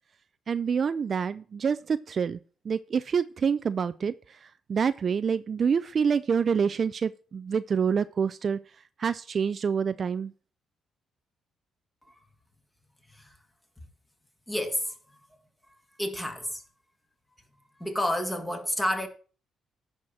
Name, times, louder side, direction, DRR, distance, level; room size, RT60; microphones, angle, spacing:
voice 1, 0.5-2.4 2.6-4.1 4.7-8.6 9.0-10.3, right 6 dB, 45° right, 0.4 m, -27 dB
voice 2, 14.5-15.0 16.0-16.6 17.8-19.1, left 1 dB, 10° left, 2.0 m, -30 dB
11.0 x 4.4 x 7.4 m
cardioid pair, 90°, 0 cm